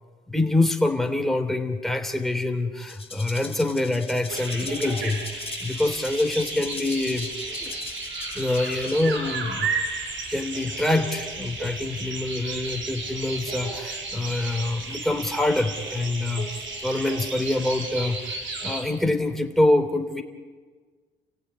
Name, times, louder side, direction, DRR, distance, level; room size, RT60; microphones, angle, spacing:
voice 1, 0.3-7.3 7.6-7.7 8.3-9.7 10.3-20.2, left 2 dB, ahead, 5 dB, 3.3 m, -25 dB
Rattle (instrument), 2.8-9.3, left 4 dB, 30° left, 2.3 m, -40 dB
sound 1, 4.3-18.8, right 3 dB, 70° right, 6.2 m, -33 dB
30.0 x 16.0 x 9.9 m, 1.5 s
cardioid pair, 90°, 20 cm